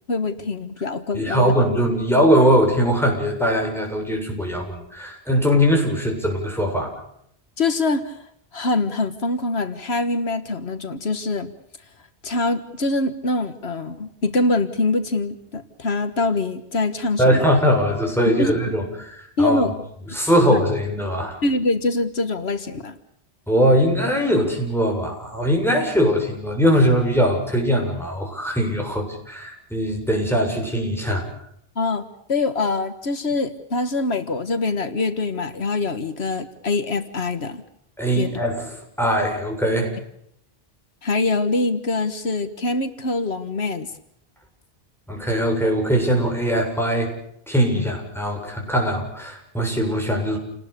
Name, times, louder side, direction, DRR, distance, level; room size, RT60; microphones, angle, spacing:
voice 1, 0.1-1.5 7.6-8.2 8.5-11.5 12.2-17.5 18.4-18.8 19.4-19.8 20.5-20.6 21.4-23.0 31.8-37.6 38.2-38.3 41.0-43.9 47.7-47.9, left 3 dB, 85° left, 10 dB, 1.8 m, -24 dB
voice 2, 1.1-6.9 17.2-19.7 20.1-21.4 23.5-31.3 38.0-38.7 39.0-39.9 45.1-47.1 47.5-50.4, equal, ahead, 1 dB, 7.4 m, -21 dB
29.0 x 19.5 x 6.8 m, 0.72 s
omnidirectional pair, 1.1 m